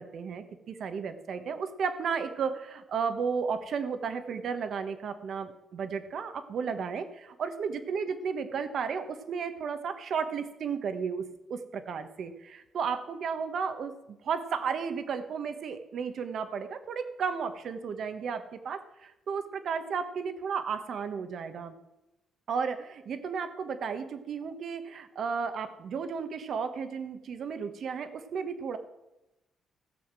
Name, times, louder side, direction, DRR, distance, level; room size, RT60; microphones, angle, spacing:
voice 1, 0.0-21.7 22.5-28.8, right 6 dB, 60° right, 9 dB, 1.3 m, -33 dB
17.0 x 7.2 x 6.2 m, 0.95 s
cardioid pair, 90°, 0 cm